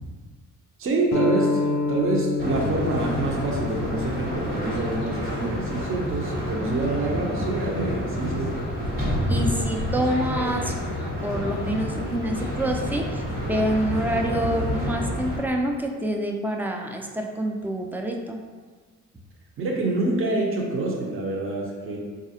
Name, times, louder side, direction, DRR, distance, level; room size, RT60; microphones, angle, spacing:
voice 1, 0.8-8.6 19.6-22.0, right 2 dB, 45° right, -1 dB, 0.6 m, -27 dB
sound 1, 1.1-6.3, left 4 dB, 55° left, 0.5 m, -29 dB
sound 2, 2.4-15.4, equal, 90° right, 1.2 m, -29 dB
voice 2, 9.3-10.7 11.2-18.4, right 1 dB, 5° right, 2 dB, 0.3 m, -27 dB
3.9 x 2.4 x 2.7 m, 1.4 s
cardioid pair, 90°, 30 cm